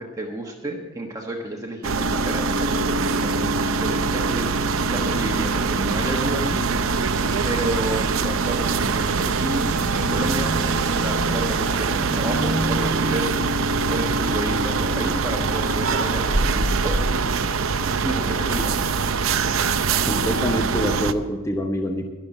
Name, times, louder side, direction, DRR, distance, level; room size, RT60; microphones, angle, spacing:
voice 1, 0.0-6.6 7.4-17.3 18.0-19.0, right 1 dB, 15° right, 0 dB, 1.3 m, -31 dB
sound 1, 1.8-21.1, right 4 dB, 75° right, 0.7 m, -23 dB
sound 2, 4.8-19.0, right 1 dB, 60° right, 1.2 m, -31 dB
voice 2, 20.1-22.1, equal, 15° left, 4 dB, 0.9 m, -25 dB
12.0 x 11.5 x 5.5 m, 1.3 s
head